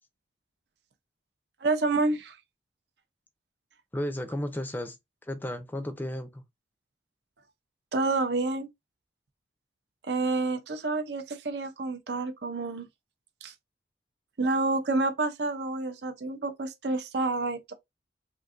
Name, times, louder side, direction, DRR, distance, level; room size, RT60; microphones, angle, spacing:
voice 1, 1.6-2.4 7.9-8.7 10.1-12.8 13.4-13.5 14.4-17.7, right 3 dB, 65° right, 0.6 m, -28 dB
voice 2, 3.9-5.0 5.2-6.4, left 1 dB, 10° left, 0.4 m, -33 dB
3.6 x 2.6 x 2.5 m
head